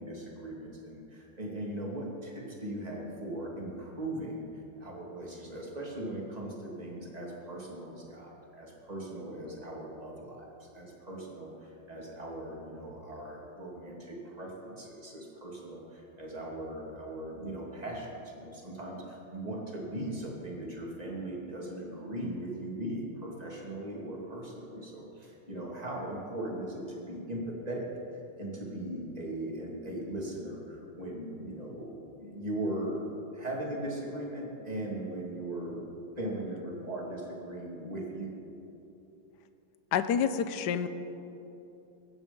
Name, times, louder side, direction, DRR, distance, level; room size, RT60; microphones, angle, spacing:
voice 1, 0.0-27.9 28.4-33.0 33.3-35.9 36.2-38.3, right 1 dB, 20° right, -3 dB, 2.6 m, -39 dB
voice 2, 39.9-40.9, left 8 dB, 65° left, 11 dB, 1.2 m, -28 dB
22.5 x 9.5 x 5.4 m, 2.9 s
omnidirectional pair, 2.3 m